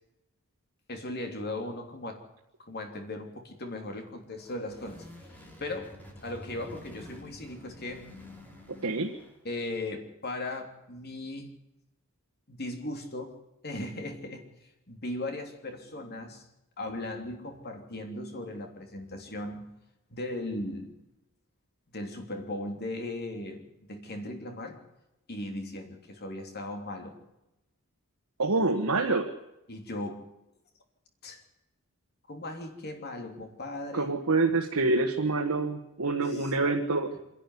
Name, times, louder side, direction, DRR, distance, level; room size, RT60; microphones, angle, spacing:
voice 1, 0.9-2.2 2.6-5.9 6.2-8.1 9.4-11.5 12.5-13.3 13.6-14.4 14.9-16.4 16.8-19.7 20.1-21.0 21.9-24.8 25.3-27.2 29.7-30.3 31.2-31.4 32.3-34.1 36.2-36.5, left 1 dB, 45° left, 5 dB, 3.2 m, -38 dB
sound 1, 4.2-9.5, left 1 dB, 10° left, 3.5 m, -49 dB
voice 2, 8.8-9.1 28.4-29.3 33.9-37.1, right 3 dB, 85° right, 3 dB, 1.5 m, -26 dB
25.5 x 11.5 x 9.8 m, 0.92 s
head